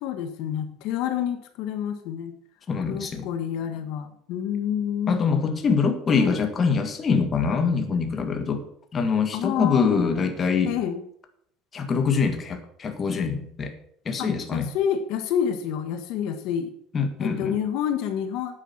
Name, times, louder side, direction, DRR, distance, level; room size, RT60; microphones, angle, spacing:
voice 1, 0.0-2.3 2.9-5.3 6.1-6.4 9.3-10.3 10.6-11.0 14.2-16.7 17.2-18.6, left 9 dB, 60° left, 7 dB, 1.4 m, -28 dB
voice 2, 2.7-3.3 5.1-8.6 8.9-10.7 11.7-13.7 14.0-14.7 16.9-17.6, left 5 dB, 25° left, 5 dB, 1.6 m, -24 dB
9.9 x 9.3 x 6.0 m, 0.67 s
cardioid pair, 155°, 0 cm